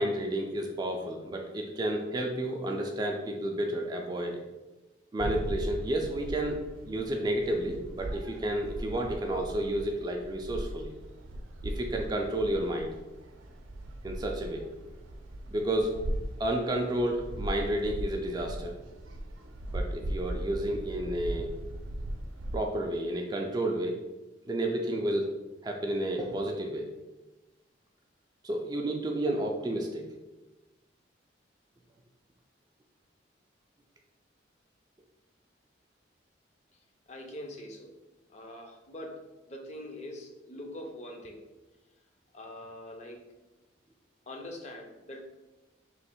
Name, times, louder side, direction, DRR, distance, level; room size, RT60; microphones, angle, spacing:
voice 1, 0.0-4.4 5.1-6.6 6.9-10.9 11.6-12.9 14.0-14.7 15.5-16.0 16.4-18.8 19.7-21.5 22.5-24.0 24.5-25.3 25.6-26.9 28.4-30.1, right 1 dB, 20° right, 2 dB, 0.3 m, -31 dB
sound 1, 5.2-22.6, right 1 dB, 85° right, 0.5 m, -38 dB
voice 2, 37.1-37.9 38.3-41.4 42.3-43.2 44.3-45.2, left 1 dB, 35° left, 2 dB, 0.5 m, -43 dB
3.1 x 2.9 x 4.4 m, 1.1 s
head